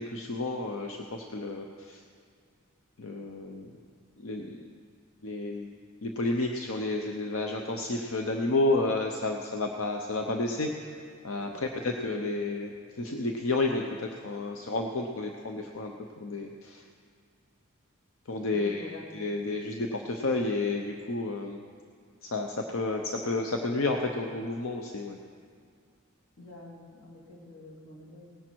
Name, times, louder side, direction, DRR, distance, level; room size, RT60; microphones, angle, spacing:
voice 1, 0.0-2.0 3.0-3.7 4.2-4.6 5.2-5.7 6.0-10.9 11.2-11.5 11.8-16.8 18.3-18.8 19.1-21.6 22.2-25.2, left 2 dB, 80° left, 3 dB, 0.8 m, -31 dB
voice 2, 11.4-11.7 18.5-19.0 26.4-28.3, left 2 dB, 55° left, -4 dB, 3.0 m, -46 dB
18.5 x 10.5 x 4.6 m, 2.2 s
head